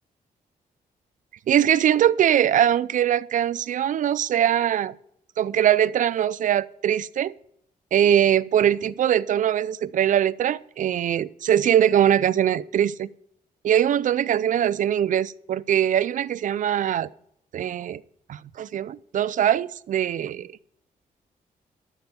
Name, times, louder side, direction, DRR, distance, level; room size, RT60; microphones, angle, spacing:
voice 1, 1.5-4.9 5.4-7.3 7.9-13.1 13.6-17.1 17.5-18.0 18.3-20.5, right 10 dB, 60° right, 0.5 m, -22 dB
12.5 x 7.1 x 6.9 m
cardioid pair, 105°, 15 cm